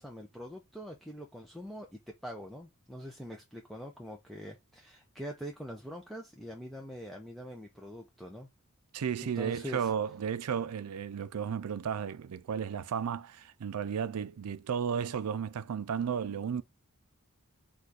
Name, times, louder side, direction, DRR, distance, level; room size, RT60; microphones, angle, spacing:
voice 1, 0.0-8.5 9.2-9.9, equal, ahead, 0.5 m, -44 dB
voice 2, 8.9-16.6, right 7 dB, 90° right, 0.4 m, -33 dB
4.2 x 2.4 x 4.7 m
head